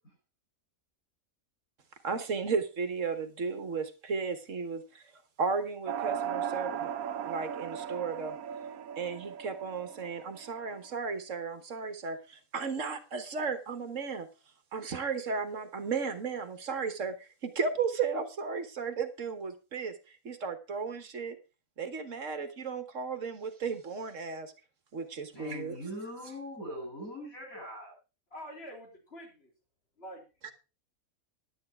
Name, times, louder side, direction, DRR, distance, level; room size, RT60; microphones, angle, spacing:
voice 1, 2.0-5.0 5.4-6.9 7.2-8.4 9.0-14.3 14.7-19.9 20.2-21.4 21.8-24.5 24.9-25.8 30.4-30.5, right 5 dB, 65° right, 10 dB, 1.6 m, -34 dB
sound 1, 5.9-10.9, right 9 dB, 85° right, 1.3 m, -37 dB
voice 2, 25.3-27.9, equal, 80° left, -1 dB, 8.5 m, -41 dB
voice 3, 28.3-29.5 30.0-30.5, equal, 45° left, 0 dB, 3.9 m, -46 dB
11.0 x 9.5 x 4.5 m, 0.30 s
omnidirectional pair, 1.5 m